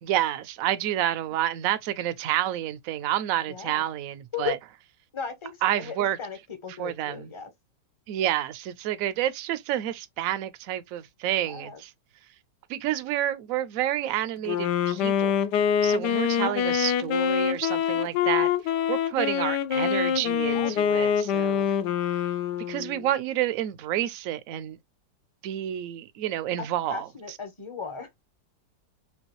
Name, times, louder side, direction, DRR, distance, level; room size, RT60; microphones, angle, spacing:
voice 1, 0.0-4.6 5.6-6.2 6.8-7.3 8.1-11.9 12.7-15.4 15.8-18.5 18.9-21.7 22.7-24.8 25.4-27.1, right 12 dB, 70° right, 0.8 m, -29 dB
voice 2, 3.5-3.8 4.3-4.5 5.1-6.4 6.6-7.5 11.4-11.8 15.9-16.0 16.4-16.8 17.9-18.3 20.5-21.1 26.6-28.1, left 6 dB, 25° left, 0.6 m, -37 dB
Wind instrument woodwind instrument, 14.4-23.1, left 8 dB, 80° left, 1.2 m, -25 dB
5.3 x 2.3 x 2.9 m
omnidirectional pair, 1.8 m